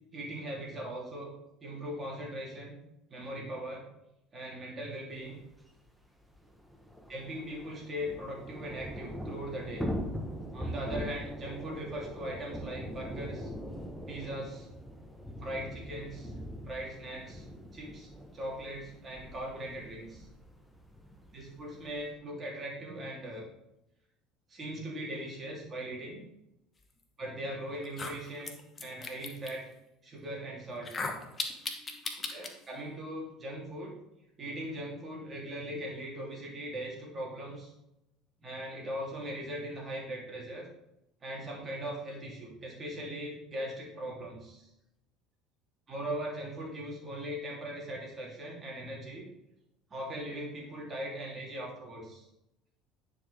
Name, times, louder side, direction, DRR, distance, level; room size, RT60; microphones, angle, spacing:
voice 1, 0.1-1.3 1.6-2.8 3.1-3.9 4.3-5.4 7.1-9.9 10.5-13.5 14.0-14.7 15.4-16.3 16.6-17.5 17.7-18.1 18.3-20.3 21.3-23.4 24.5-26.2 27.2-29.7 30.0-30.9 32.1-34.0 34.4-37.7 38.4-40.7 41.2-44.7 45.9-49.3 49.9-52.2, right 1 dB, 35° right, -2 dB, 3.3 m, -40 dB
Thunder / Rain, 5.5-5.6 5.8-5.9 6.2-22.1, equal, 5° right, 1.3 m, -42 dB
sound 1, 27.2-27.3 27.8-29.5 30.8-32.5, left 3 dB, 30° left, 1.3 m, -37 dB
10.0 x 5.3 x 3.6 m, 0.86 s
hypercardioid pair, 65°, 0 cm